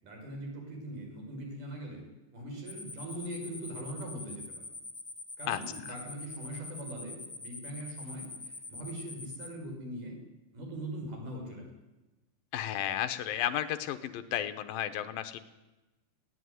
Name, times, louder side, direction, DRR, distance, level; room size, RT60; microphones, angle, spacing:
voice 1, 0.0-2.0 2.3-4.7 5.4-10.2 10.5-11.7, right 1 dB, 45° right, 2 dB, 7.4 m, -41 dB
sound 1, 2.7-9.5, left 3 dB, 20° left, 2.1 m, -44 dB
voice 2, 12.5-15.4, left 11 dB, 75° left, 9 dB, 2.2 m, -33 dB
21.5 x 17.5 x 9.7 m, 1.1 s
omnidirectional pair, 5.4 m